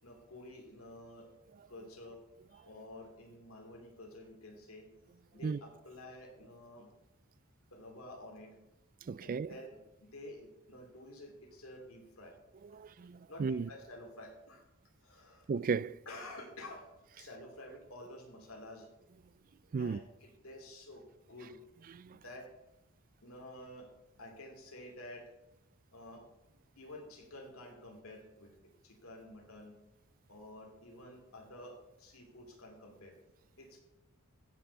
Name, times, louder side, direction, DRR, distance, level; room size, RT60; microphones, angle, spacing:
voice 1, 0.0-1.3 1.7-2.2 2.5-4.9 5.3-6.9 7.7-8.6 9.2-9.8 10.1-12.3 13.3-14.6 15.0-15.5 16.1-18.9 19.8-21.0 21.3-21.5 22.1-22.5 23.2-23.9 24.2-25.3 25.9-26.2 26.8-28.5 28.8-29.7 30.3-33.1 33.6-33.8, left 1 dB, 70° left, 2.8 m, -50 dB
voice 2, 9.1-9.5 12.7-13.7 15.5-16.0 19.7-20.0 21.9-22.2, right 5 dB, 40° right, 0.3 m, -35 dB
15.5 x 6.1 x 6.7 m
head